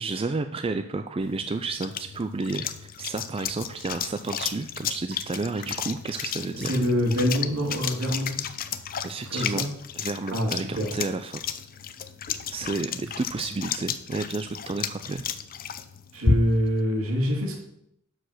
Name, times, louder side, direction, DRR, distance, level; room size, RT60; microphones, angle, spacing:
voice 1, 0.0-6.7 9.0-9.7 9.9-11.4 12.5-15.2, right 3 dB, 25° right, 8 dB, 0.4 m, -31 dB
sound 1, 1.2-16.8, left 6 dB, 40° left, 0.6 m, -33 dB
voice 2, 6.6-8.3 9.3-9.7 10.3-10.9 16.1-17.6, equal, 70° right, 0 dB, 2.7 m, -25 dB
12.0 x 5.0 x 6.5 m, 0.76 s
head